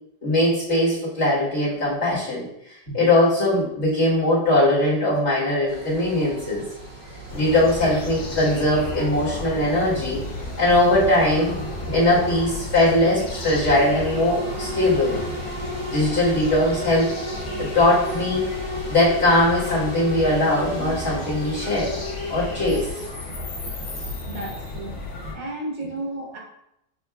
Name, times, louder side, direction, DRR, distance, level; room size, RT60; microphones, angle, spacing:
voice 1, 0.2-6.6 7.3-10.2 10.6-11.6 11.9-15.2 15.9-17.1 17.6-18.5 18.9-21.9 22.3-22.9, left 1 dB, 40° left, -9 dB, 1.7 m, -20 dB
sound 1, 5.7-23.1, right 1 dB, 20° right, 1.4 m, -35 dB
sound 2, 7.3-25.3, left 2 dB, 90° left, 1.7 m, -33 dB
voice 2, 24.3-26.4, right 1 dB, 85° right, -3 dB, 1.8 m, -33 dB
6.6 x 2.7 x 2.3 m, 0.79 s
omnidirectional pair, 1.9 m